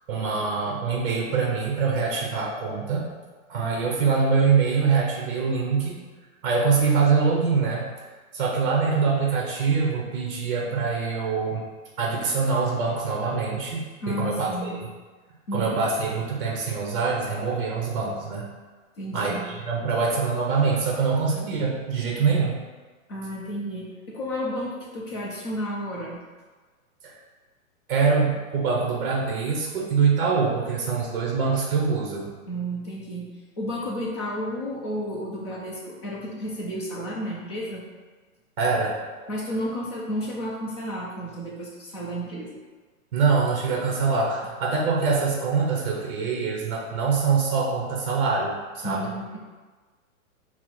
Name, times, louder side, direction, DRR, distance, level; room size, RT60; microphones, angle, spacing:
voice 1, 0.1-3.1 3.5-5.9 6.4-7.9 8.3-11.6 12.0-14.8 15.5-18.5 19.1-22.5 27.0-27.1 27.9-32.3 38.6-38.9 43.1-49.1, right 5 dB, 40° right, -3 dB, 0.7 m, -24 dB
voice 2, 14.0-14.8 15.5-15.8 19.0-19.5 23.1-26.2 32.5-33.3 33.6-37.8 39.3-42.5 48.8-49.4, equal, 20° left, -5 dB, 0.5 m, -32 dB
4.3 x 2.0 x 4.6 m, 1.4 s
hypercardioid pair, 165°, 41 cm